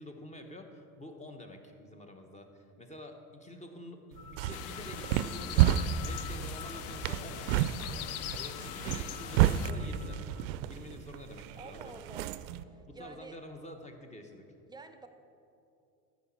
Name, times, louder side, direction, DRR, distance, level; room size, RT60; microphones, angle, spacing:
voice 1, 0.0-5.8 6.0-10.3 10.7-12.0 12.9-14.5, left 1 dB, 15° left, 5 dB, 1.1 m, -48 dB
sound 1, 4.1-12.6, right 12 dB, 60° right, 0.5 m, -31 dB
sound 2, 4.2-10.4, left 7 dB, 75° left, 0.7 m, -50 dB
sound 3, 4.5-9.7, left 11 dB, 35° left, 0.4 m, -42 dB
voice 2, 11.5-12.3 12.7-13.4 14.7-15.1, right 3 dB, 10° right, 7 dB, 0.7 m, -48 dB
13.5 x 6.1 x 4.4 m, 2.6 s
hypercardioid pair, 70°, 45 cm